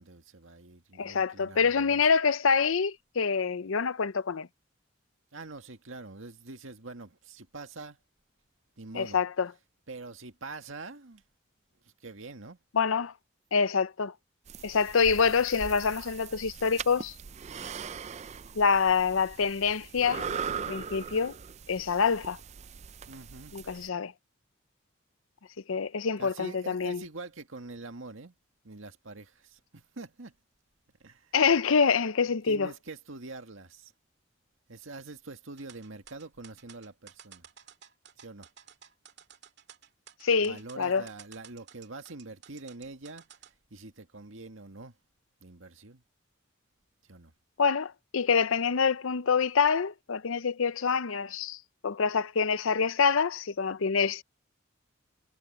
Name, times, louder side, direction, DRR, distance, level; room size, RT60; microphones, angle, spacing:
voice 1, 0.0-2.0 5.3-8.0 8.8-9.2 9.9-11.2 11.8-12.6 23.1-23.5 26.2-28.3 28.6-30.4 31.0-31.3 32.5-33.9 34.7-37.5 38.2-38.5 40.4-43.3 43.7-44.9 45.4-46.0 47.1-47.3, right 3 dB, 80° right, 1.9 m, -45 dB
voice 2, 1.0-4.5 8.9-9.5 12.7-13.1 13.5-14.1 14.6-17.1 18.5-20.3 20.7-21.3 21.7-22.4 23.5-24.1 25.7-27.0 31.3-32.7 40.2-41.0 47.6-54.2, left 5 dB, 85° left, 0.7 m, -26 dB
sound 1, 14.5-23.9, right 6 dB, 35° right, 0.4 m, -40 dB
sound 2, 35.6-43.5, right 9 dB, 55° right, 2.1 m, -53 dB
head